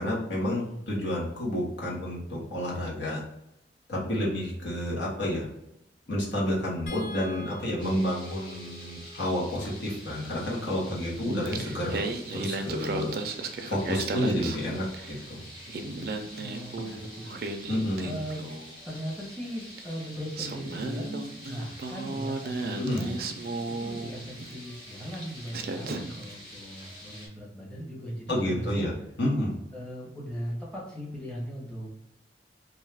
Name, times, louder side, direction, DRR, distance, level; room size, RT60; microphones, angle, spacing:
voice 1, 0.0-3.2 3.9-5.5 6.1-12.1 12.3-13.1 13.7-15.4 17.7-18.2 22.8-23.0 28.3-28.9 29.2-29.5, left 1 dB, 85° left, -4 dB, 1.0 m, -30 dB
voice 2, 4.0-4.4 16.4-17.7 18.0-18.6 18.8-23.2 23.6-28.9 29.7-31.9, equal, 5° left, -5 dB, 0.7 m, -39 dB
sound 1, 6.9-13.2 14.7-14.9 15.2-15.4, right 1 dB, 55° left, 0.7 m, -49 dB
sound 2, 7.8-27.3, equal, 25° left, 1.1 m, -47 dB
Singing, 11.3-15.2 15.5-18.8 19.8-19.9 20.3-24.5 25.1-25.3 25.5-26.3, right 3 dB, 55° right, 0.3 m, -35 dB
2.6 x 2.3 x 3.3 m, 0.84 s
head